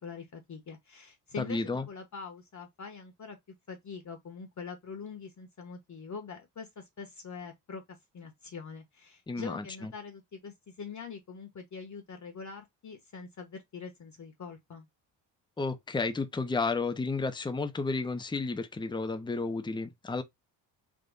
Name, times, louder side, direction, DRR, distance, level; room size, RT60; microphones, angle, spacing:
voice 1, 0.0-3.4 3.7-14.9, left 5 dB, 40° left, 1.1 m, -44 dB
voice 2, 1.4-1.8 9.3-9.6 15.6-20.2, left 3 dB, 10° left, 0.7 m, -32 dB
3.6 x 2.5 x 3.9 m
supercardioid pair, 60°, 47 cm